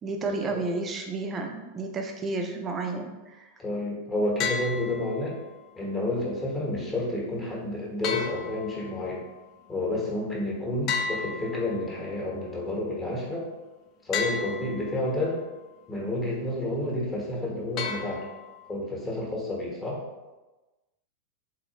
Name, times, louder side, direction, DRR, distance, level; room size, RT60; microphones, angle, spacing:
voice 1, 0.0-3.5, right 3 dB, 20° right, 3 dB, 0.5 m, -31 dB
voice 2, 3.6-5.3 5.8-9.2 9.7-13.5 14.0-15.4 15.9-18.2 18.7-20.0, left 1 dB, 15° left, -3 dB, 1.1 m, -30 dB
sound 1, 4.4-5.4 8.0-9.1 10.9-12.1 14.1-15.1 17.8-18.7, left 5 dB, 40° left, 0.4 m, -33 dB
4.1 x 2.7 x 2.9 m, 1.1 s
figure-of-eight pair, 90°, 0 cm